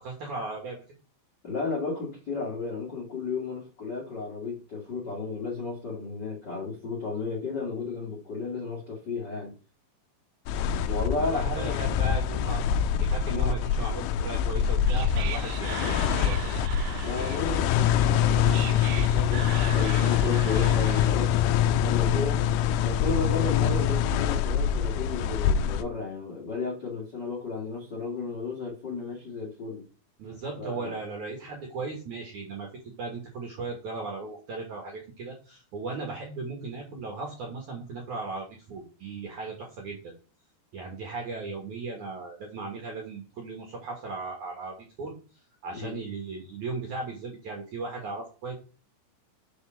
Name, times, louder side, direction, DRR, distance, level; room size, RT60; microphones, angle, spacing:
voice 1, 0.0-0.8 11.1-16.4 30.2-40.1 40.7-45.1 45.6-48.6, right 3 dB, 65° right, 1 dB, 2.0 m, -37 dB
voice 2, 1.4-9.5 10.9-11.8 13.3-13.6 15.6-15.8 17.0-22.4 22.8-29.8 30.6-30.9 45.7-46.0, left 4 dB, 60° left, -2 dB, 1.0 m, -33 dB
sound 1, 10.5-25.8, left 9 dB, 90° left, 2.4 m, -25 dB
Whispering, 14.5-21.4, right 6 dB, 90° right, 3.3 m, -37 dB
7.0 x 4.9 x 5.7 m, 0.36 s
omnidirectional pair, 5.5 m